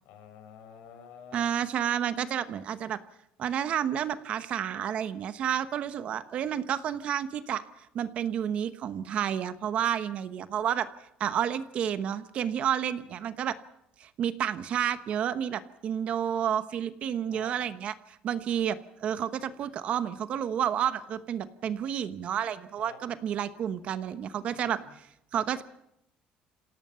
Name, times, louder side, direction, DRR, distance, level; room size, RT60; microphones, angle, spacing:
voice 1, 0.0-1.5 17.3-17.5 22.8-23.0 24.5-25.0, left 8 dB, 75° left, 6 dB, 5.4 m, -49 dB
voice 2, 1.3-3.0 3.4-10.9 11.2-13.6 14.0-25.1 25.3-25.6, right 9 dB, 40° right, 12 dB, 1.0 m, -30 dB
27.5 x 17.0 x 5.7 m, 0.81 s
cardioid pair, 165°, 3 cm